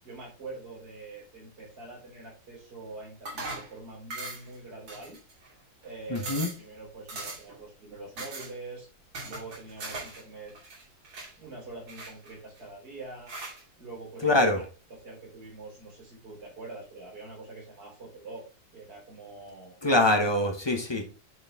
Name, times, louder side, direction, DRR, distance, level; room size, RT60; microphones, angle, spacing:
voice 1, 0.0-5.2 5.8-8.9 9.2-10.5 11.4-13.3 13.8-14.6 14.9-18.4 18.7-19.7, right 3 dB, 60° right, 4.7 m, -44 dB
sound 1, 3.3-3.7 4.1-4.6 4.9-5.5 5.8-5.9 6.2-6.6 7.1-7.6 8.2-8.5 9.1-10.2 10.5-11.3 11.9-12.6 13.3-13.6, right 2 dB, 85° right, 3.4 m, -39 dB
voice 2, 6.1-6.5 14.2-14.6 19.8-21.0, left 1 dB, 35° left, 0.4 m, -24 dB
9.4 x 4.3 x 3.4 m
omnidirectional pair, 2.1 m